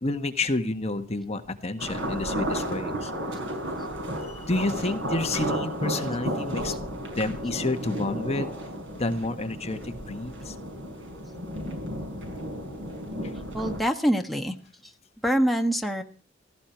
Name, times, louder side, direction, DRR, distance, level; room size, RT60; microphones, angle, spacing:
voice 1, 0.0-3.1 4.2-6.7 7.1-8.5 8.9-10.5 13.2-13.3, left 2 dB, 35° left, 7 dB, 1.4 m, -30 dB
sound 1, 1.8-13.8, equal, 85° right, 5.8 m, -33 dB
voice 2, 13.5-14.6 15.2-16.0, equal, ahead, 3 dB, 1.3 m, -25 dB
17.0 x 15.0 x 4.5 m, 0.36 s
head